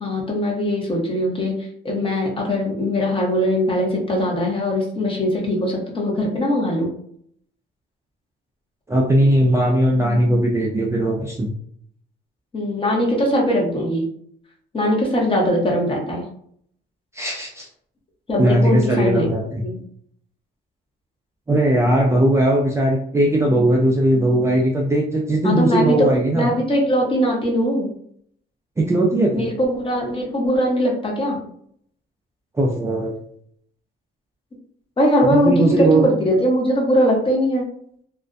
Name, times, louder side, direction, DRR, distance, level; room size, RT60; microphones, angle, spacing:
voice 1, 0.0-6.9 12.5-14.1 14.7-16.3 18.3-19.8 25.4-26.1 26.3-27.9 29.3-31.4 35.0-37.6, equal, 25° left, -1 dB, 0.8 m, -21 dB
voice 2, 8.9-11.5 17.1-17.7 18.4-19.6 21.5-26.5 28.8-29.4 32.6-33.2 35.3-36.1, right 1 dB, 15° right, -2 dB, 0.4 m, -18 dB
2.4 x 2.1 x 2.4 m, 0.66 s
cardioid pair, 90°, 20 cm